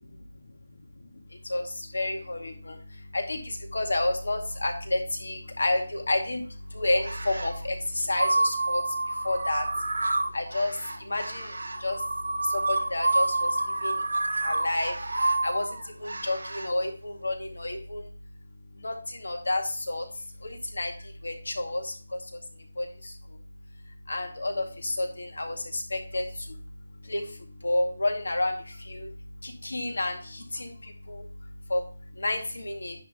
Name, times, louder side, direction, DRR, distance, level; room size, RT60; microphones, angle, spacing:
voice 1, 1.9-2.7 3.1-3.4 3.7-6.4 6.8-8.8 9.3-9.6 10.3-10.7 11.1-11.5 11.8-12.0 12.7-13.5 13.8-14.0 14.4-14.9 15.4-15.7 16.0-18.0 18.8-18.9 19.2-19.6 19.9-20.0 20.8-20.9 21.2-21.8 22.8-22.9 24.1-26.2 27.1-27.2 27.6-28.5 28.9-29.1 29.4-30.2 30.5-30.7 31.1-31.2 31.7-31.8 32.2-32.9, left 2 dB, 85° left, 3 dB, 2.1 m, -29 dB
sound 1, 7.0-7.6 8.1-16.7, right 2 dB, 90° right, 1.2 m, -28 dB
10.0 x 3.6 x 5.5 m, 0.38 s
figure-of-eight pair, 165°, 0 cm